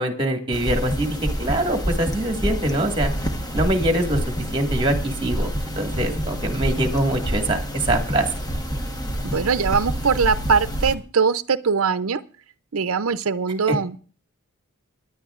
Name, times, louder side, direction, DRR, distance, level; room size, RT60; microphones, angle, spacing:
voice 1, 0.0-3.1 3.5-4.2 4.5-8.3 13.7-13.8, right 1 dB, 25° right, 4 dB, 1.8 m, -23 dB
sound 1, 0.5-10.9, equal, 20° left, 1.2 m, -27 dB
voice 2, 9.3-12.2 12.7-14.1, right 5 dB, 70° right, 13 dB, 0.6 m, -21 dB
24.5 x 10.5 x 2.5 m, 0.40 s
head